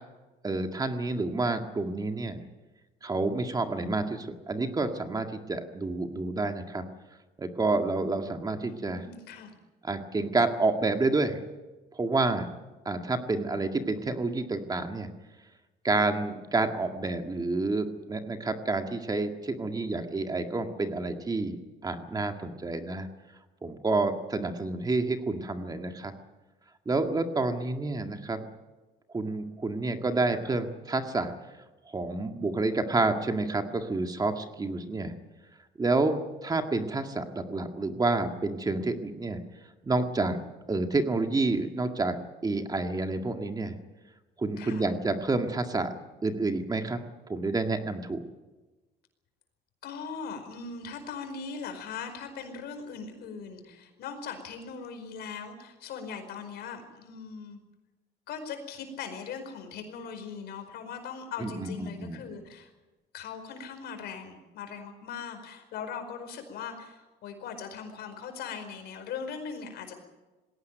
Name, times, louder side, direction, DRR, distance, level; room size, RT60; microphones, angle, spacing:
voice 1, 0.4-2.4 3.0-6.8 7.4-9.1 9.8-11.4 11.9-12.5 12.9-15.1 15.8-21.6 21.8-23.1 23.6-26.1 26.9-28.4 29.1-31.3 31.9-35.1 35.8-39.4 39.9-40.4 40.7-43.8 44.4-45.9 46.2-47.0 47.3-48.2 61.4-62.2, right 3 dB, 20° right, 6 dB, 1.9 m, -29 dB
voice 2, 8.7-9.5 44.6-44.9 49.8-57.6 58.3-62.7 63.1-69.9, left 6 dB, 75° left, 7 dB, 4.9 m, -40 dB
20.5 x 17.5 x 9.2 m, 1.2 s
cardioid pair, 110°, 17 cm